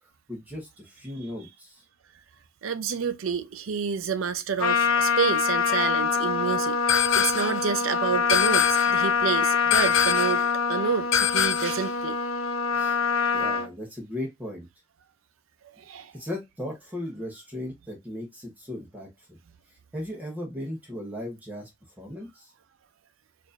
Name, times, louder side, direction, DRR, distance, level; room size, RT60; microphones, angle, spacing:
voice 1, 0.3-1.8 12.7-13.0 13.3-14.7 16.1-19.4 19.9-21.7 22.0-22.5, left 1 dB, 10° right, 0.9 m, -37 dB
voice 2, 2.6-12.2 15.8-16.1, right 6 dB, 70° right, 0.5 m, -29 dB
Trumpet, 4.6-13.7, left 6 dB, 90° left, 0.8 m, -25 dB
sound 1, 6.9-7.6 8.3-9.0 9.7-10.4 11.1-11.9, left 9 dB, 65° left, 0.3 m, -24 dB
4.5 x 2.6 x 2.4 m
head